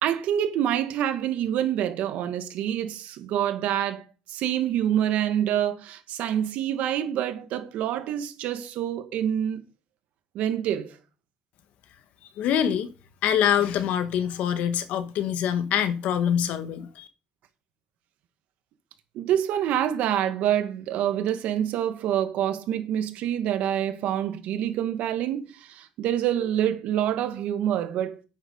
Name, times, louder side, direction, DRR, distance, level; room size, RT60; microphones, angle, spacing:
voice 1, 0.0-4.0 4.3-9.6 10.4-11.0 19.2-28.2, right 10 dB, 75° right, 1.8 m, -26 dB
voice 2, 12.4-12.9 13.2-17.1, left 9 dB, 75° left, 1.4 m, -25 dB
9.7 x 8.9 x 5.3 m
cardioid pair, 145°, 3 cm